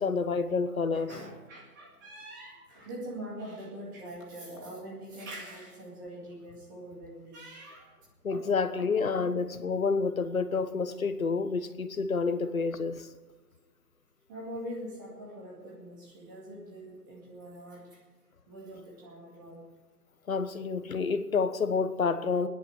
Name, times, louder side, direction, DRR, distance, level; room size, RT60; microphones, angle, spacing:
voice 1, 0.0-1.1 8.2-13.1 20.3-22.5, left 4 dB, 60° left, 11 dB, 1.3 m, -29 dB
voice 2, 0.9-8.0 8.3-8.4 8.8-9.2 9.5-9.6 14.3-18.0 18.5-19.7, right 1 dB, 15° right, -2 dB, 2.1 m, -43 dB
21.5 x 10.0 x 4.7 m, 1.4 s
hypercardioid pair, 165°, 47 cm